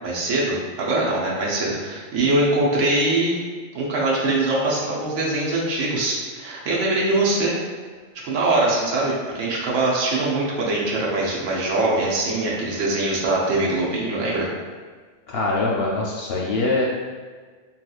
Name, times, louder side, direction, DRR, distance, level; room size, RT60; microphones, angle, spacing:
voice 1, 0.0-3.4 3.7-7.5 8.2-14.5, right 2 dB, 80° right, -5 dB, 1.0 m, -22 dB
voice 2, 15.3-16.8, left 2 dB, 65° left, -3 dB, 0.7 m, -23 dB
3.4 x 2.8 x 2.3 m, 1.5 s
omnidirectional pair, 1.3 m